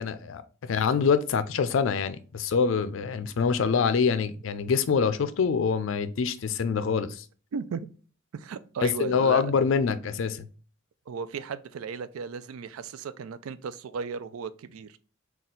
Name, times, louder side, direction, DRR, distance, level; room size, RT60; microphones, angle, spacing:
voice 1, 0.0-7.2 8.8-10.5, left 6 dB, 65° left, 0.4 m, -25 dB
voice 2, 7.5-7.9 8.3-9.5 11.1-15.0, right 5 dB, 90° right, 0.4 m, -35 dB
4.1 x 2.3 x 3.7 m
head